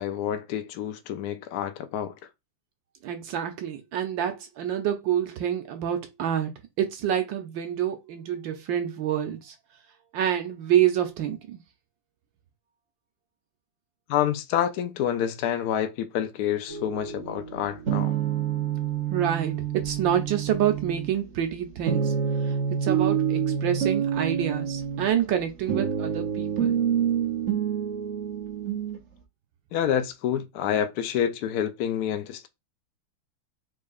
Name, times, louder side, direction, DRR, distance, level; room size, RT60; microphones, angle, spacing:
voice 1, 0.0-2.1 14.1-18.1 29.7-32.5, left 10 dB, 70° left, 0.9 m, -28 dB
voice 2, 3.0-9.5 10.1-11.6 19.1-22.1 22.4-26.8, right 10 dB, 75° right, 1.4 m, -27 dB
sound 1, 16.7-29.0, right 8 dB, 55° right, 0.8 m, -28 dB
5.0 x 3.7 x 2.4 m
omnidirectional pair, 2.1 m